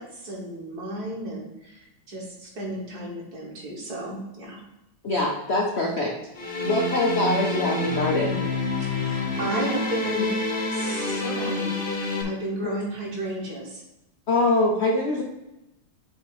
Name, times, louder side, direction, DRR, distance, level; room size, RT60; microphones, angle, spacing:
voice 1, 0.0-4.6 8.8-10.4 10.7-11.8 12.2-13.8, right 1 dB, 50° right, -2 dB, 1.8 m, -33 dB
voice 2, 5.0-6.1 6.6-8.4 12.6-12.8 14.3-15.2, left 2 dB, 90° left, -2 dB, 0.5 m, -23 dB
sound 1, 6.3-12.2, left 2 dB, 45° left, 0.7 m, -27 dB
7.2 x 2.8 x 4.7 m, 0.91 s
omnidirectional pair, 2.3 m